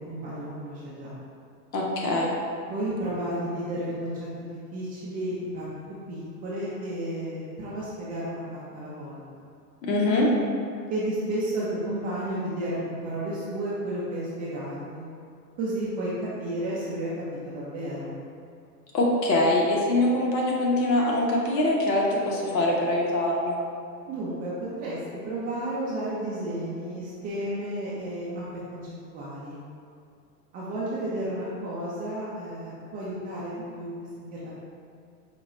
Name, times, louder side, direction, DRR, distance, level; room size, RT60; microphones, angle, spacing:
voice 1, 0.1-1.2 2.7-5.7 6.1-8.4 8.7-9.2 10.9-15.0 15.6-16.1 16.4-17.1 17.4-18.2 24.1-25.0 25.2-28.8 29.1-29.6 30.5-33.9 34.2-34.5, right 1 dB, 20° right, -8 dB, 0.4 m, -32 dB
voice 2, 1.7-2.3 9.8-10.3 18.9-23.6, left 1 dB, 80° left, -3 dB, 1.1 m, -23 dB
4.9 x 2.2 x 4.0 m, 2.4 s
hypercardioid pair, 110°, 49 cm